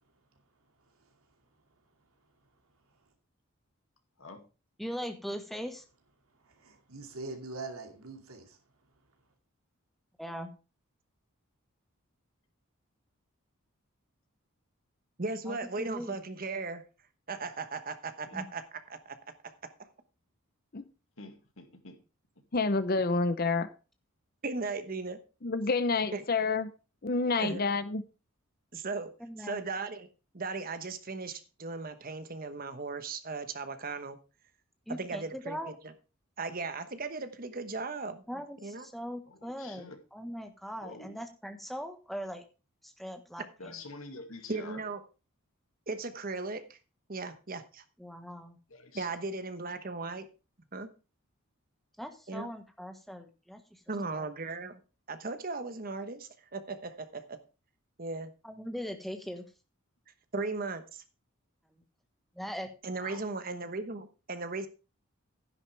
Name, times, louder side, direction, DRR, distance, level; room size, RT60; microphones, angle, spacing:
voice 1, 4.8-5.8 10.2-10.5 15.5-16.2 18.3-18.4 29.2-29.6 34.9-35.7 38.3-42.4 42.8-43.8 48.0-48.6 52.0-53.8 54.1-54.3 58.4-59.4 62.3-62.7, equal, ahead, 1.3 m, -40 dB
voice 2, 6.4-8.6, right 3 dB, 75° right, 2.5 m, -43 dB
voice 3, 15.2-16.8 17.3-19.2 19.4-19.5 19.8-19.9 24.4-25.2 26.1-26.2 27.4-27.6 28.7-29.1 29.4-30.1 30.3-34.2 34.9-35.9 36.4-38.9 43.4-43.5 44.5-45.0 45.9-46.8 47.1-47.8 48.9-50.3 50.7-50.9 52.3-52.5 53.9-54.8 55.1-57.4 58.0-58.3 60.3-61.0 62.8-64.7, right 3 dB, 40° right, 1.1 m, -37 dB
voice 4, 21.2-22.0 39.3-40.0 40.8-41.2 43.6-44.8 48.7-49.1 62.9-63.3, left 3 dB, 70° left, 2.3 m, -47 dB
voice 5, 22.5-23.7 25.4-26.7 27.0-28.0, left 3 dB, 45° left, 0.7 m, -28 dB
11.5 x 10.5 x 3.4 m
head